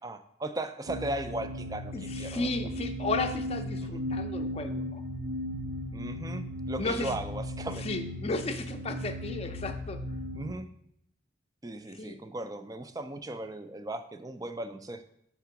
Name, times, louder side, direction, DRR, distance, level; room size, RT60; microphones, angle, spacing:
voice 1, 0.0-2.5 3.8-4.0 5.9-7.9 10.3-10.7 11.6-15.0, right 1 dB, 20° right, 9 dB, 0.4 m, -37 dB
sound 1, 0.9-10.5, equal, 70° right, 0.5 m, -36 dB
voice 2, 1.9-5.0 6.8-7.2 7.8-10.0 12.0-12.2, left 3 dB, 35° left, 6 dB, 0.5 m, -34 dB
5.9 x 3.6 x 5.8 m, 0.74 s
head